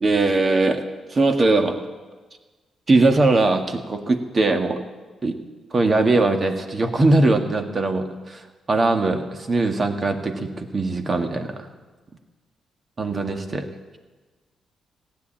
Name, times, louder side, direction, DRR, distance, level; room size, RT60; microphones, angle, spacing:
voice 1, 0.0-0.8 1.1-1.8 2.9-4.8 5.2-5.4 5.7-11.7 13.0-13.7, right 2 dB, 40° right, 5 dB, 1.8 m, -20 dB
15.5 x 9.6 x 8.8 m, 1.3 s
cardioid pair, 65°, 0 cm